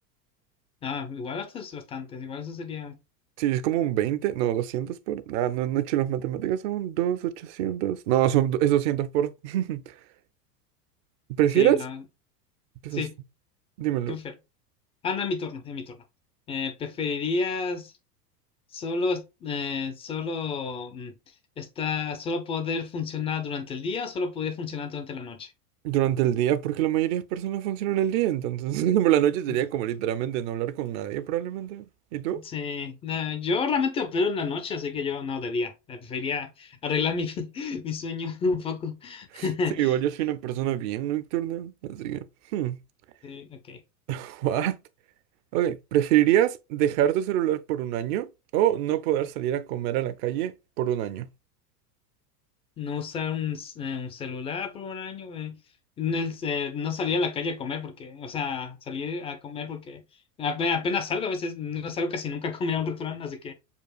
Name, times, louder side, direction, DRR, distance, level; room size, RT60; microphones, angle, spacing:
voice 1, 0.8-3.0 11.5-12.0 12.9-13.1 14.1-14.4 15.0-16.0 16.5-17.9 18.7-21.1 21.6-25.5 29.5-29.6 32.3-40.0 43.2-43.8 52.8-55.6 56.0-60.0 60.4-63.5, left 5 dB, 15° left, 0.3 m, -30 dB
voice 2, 3.4-9.9 11.3-11.8 12.8-13.0 13.8-14.2 25.8-31.9 32.1-32.4 39.8-42.3 42.5-42.8 44.1-44.8 45.5-51.3, right 12 dB, 45° right, 0.5 m, -25 dB
6.9 x 2.4 x 2.3 m
hypercardioid pair, 100°, 48 cm